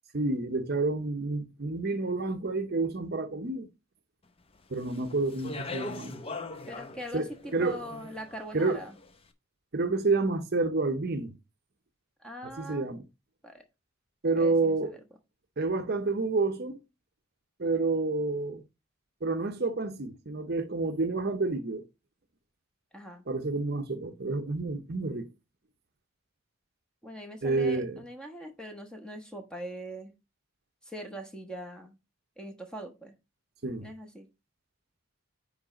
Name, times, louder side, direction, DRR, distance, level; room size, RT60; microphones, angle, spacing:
voice 1, 0.1-3.7 4.7-6.2 7.1-7.8 8.5-8.8 9.7-11.3 12.6-13.0 14.2-14.9 15.6-16.8 17.6-18.6 19.2-21.8 23.3-25.3 27.4-28.0 33.6-33.9, right 3 dB, 50° right, 0.7 m, -29 dB
Speech, 4.7-9.1, left 3 dB, 25° left, 0.6 m, -41 dB
voice 2, 6.7-9.0 12.2-13.0 13.4-13.6 14.4-15.0 22.9-23.2 27.0-30.1 30.8-32.0 32.4-33.1 33.8-34.3, equal, 5° left, 1.1 m, -42 dB
9.7 x 3.3 x 3.8 m
head